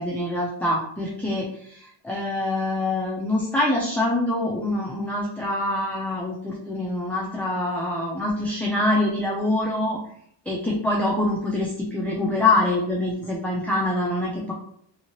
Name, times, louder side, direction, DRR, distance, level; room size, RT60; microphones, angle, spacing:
voice 1, 0.0-10.0 10.5-14.5, left 2 dB, 5° left, -4 dB, 0.4 m, -25 dB
2.9 x 2.7 x 2.8 m, 0.65 s
wide cardioid pair, 145°, 44 cm